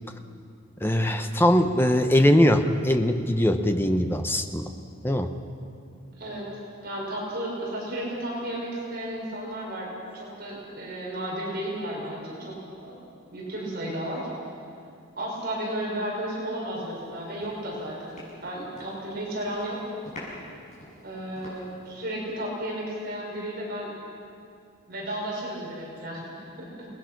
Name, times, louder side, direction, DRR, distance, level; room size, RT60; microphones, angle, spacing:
voice 1, 0.8-4.7 5.0-5.3, equal, 10° left, 6 dB, 0.9 m, -21 dB
voice 2, 6.2-12.6 12.8-14.3 15.2-19.8 21.0-23.9 24.9-26.9, right 1 dB, 45° right, -4 dB, 5.3 m, -33 dB
sound 1, 16.9-17.1 17.4-19.1 19.3-19.7 20.0-21.9, left 1 dB, 35° left, 7.2 m, -44 dB
28.0 x 20.0 x 6.0 m, 2.5 s
head